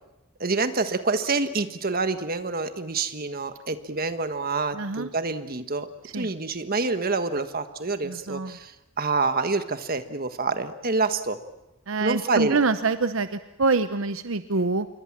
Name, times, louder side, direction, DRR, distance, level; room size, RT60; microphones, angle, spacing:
voice 1, 0.4-5.9 6.1-11.4 12.0-12.6, right 3 dB, 45° right, 9 dB, 1.5 m, -27 dB
voice 2, 4.7-5.1 6.1-6.3 8.0-8.6 11.9-14.9, right 3 dB, 75° right, 11 dB, 0.8 m, -25 dB
27.5 x 23.0 x 7.4 m, 0.93 s
head